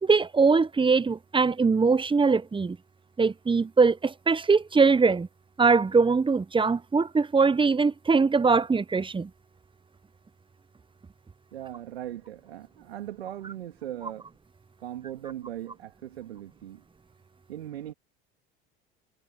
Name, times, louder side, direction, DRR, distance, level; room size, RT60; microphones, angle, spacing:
voice 1, 0.0-2.8 3.2-5.3 5.6-9.3, right 4 dB, 15° right, 1.1 m, -22 dB
voice 2, 11.5-14.2 14.8-16.8 17.5-17.9, right 12 dB, 80° right, 3.3 m, -39 dB
hypercardioid pair, 65°, 30 cm